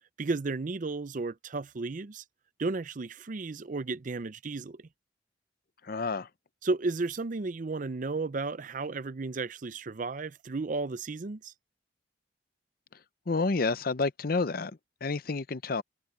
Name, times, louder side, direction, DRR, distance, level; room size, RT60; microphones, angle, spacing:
voice 1, 0.2-2.2 2.6-4.9 6.6-11.5, right 3 dB, 40° right, 0.5 m, -33 dB
voice 2, 5.8-6.3 13.3-15.8, left 3 dB, 50° left, 0.6 m, -30 dB
head